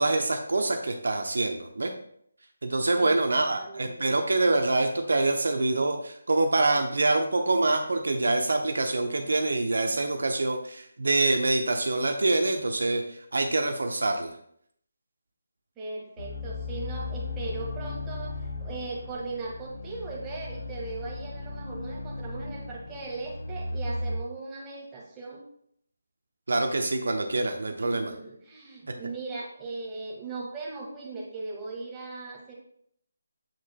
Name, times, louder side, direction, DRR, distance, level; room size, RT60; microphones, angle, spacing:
voice 1, 0.0-1.9 2.6-14.3 26.5-28.1, right 2 dB, 70° right, 5 dB, 0.8 m, -25 dB
voice 2, 3.0-4.1 15.8-25.4 27.7-32.5, right 3 dB, 15° right, -4 dB, 1.6 m, -38 dB
sound 1, 16.2-24.2, left 2 dB, 60° left, 0.8 m, -36 dB
7.6 x 7.1 x 2.3 m, 0.68 s
figure-of-eight pair, 155°, 0 cm